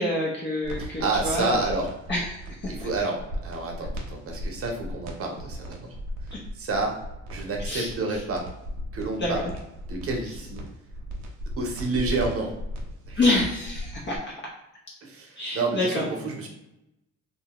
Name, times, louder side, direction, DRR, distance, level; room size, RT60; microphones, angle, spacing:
voice 1, 0.0-1.6 2.1-2.4 2.6-2.7 6.3-6.4 7.7-7.9 9.2-9.5 13.2-14.3 15.4-16.1, left 2 dB, 35° left, -3 dB, 0.7 m, -27 dB
sound 1, 0.6-14.2, equal, 85° right, 0.7 m, -36 dB
voice 2, 0.8-1.9 2.7-5.8 6.5-6.9 7.3-8.4 8.9-9.4 9.9-10.6 11.6-12.5 13.1-13.2 15.0-16.5, right 3 dB, 50° right, 1 dB, 0.8 m, -29 dB
2.6 x 2.3 x 2.8 m, 0.91 s
cardioid pair, 90°, 30 cm